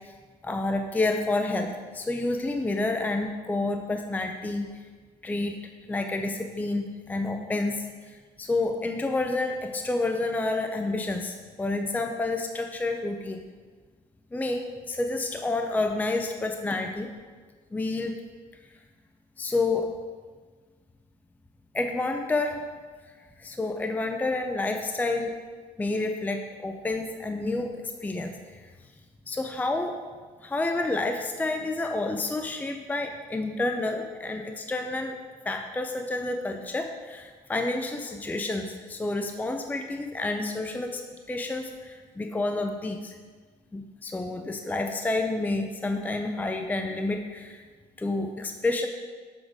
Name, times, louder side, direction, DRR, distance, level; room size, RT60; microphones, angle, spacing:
voice 1, 0.4-4.7 5.2-5.6 5.9-13.4 14.3-17.1 17.7-18.2 19.4-19.9 21.7-22.6 23.4-25.3 25.8-28.6 29.3-29.9 30.4-35.2 35.4-41.0 41.3-43.2 43.7-47.6 48.0-48.9, left 2 dB, 10° left, 5 dB, 0.5 m, -29 dB
6.6 x 6.4 x 4.8 m, 1.5 s
cardioid pair, 110°, 17 cm